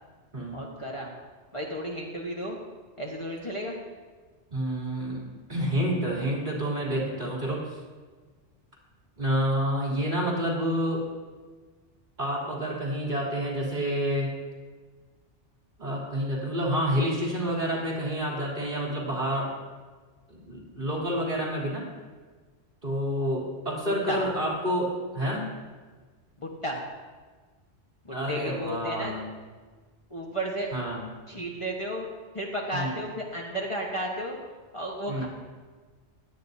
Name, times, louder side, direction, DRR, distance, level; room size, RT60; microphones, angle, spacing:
voice 1, 0.5-1.1 1.5-2.6 3.0-3.8 23.8-24.2 26.4-26.8 28.0-29.1 30.1-30.7 31.3-32.1 32.3-34.4 34.7-35.3, equal, 25° left, -2 dB, 1.3 m, -33 dB
voice 2, 4.5-5.2 5.5-7.6 9.2-11.0 12.2-14.3 15.8-19.5 20.3-21.9 22.8-25.5 28.1-29.3 30.7-31.0 32.7-33.0 35.1-35.3, equal, 40° right, -4 dB, 3.4 m, -28 dB
17.0 x 12.0 x 2.7 m, 1.4 s
omnidirectional pair, 1.2 m